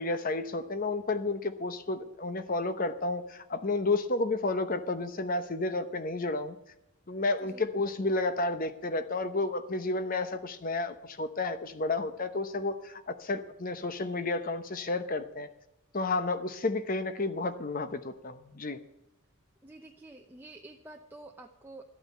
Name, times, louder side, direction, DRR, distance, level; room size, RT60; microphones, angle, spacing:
voice 1, 0.0-6.5 7.1-15.5 15.9-18.8, left 2 dB, 40° left, 11 dB, 0.9 m, -31 dB
voice 2, 19.6-21.8, right 2 dB, 10° right, 1 dB, 0.8 m, -49 dB
13.0 x 8.8 x 8.3 m, 0.87 s
head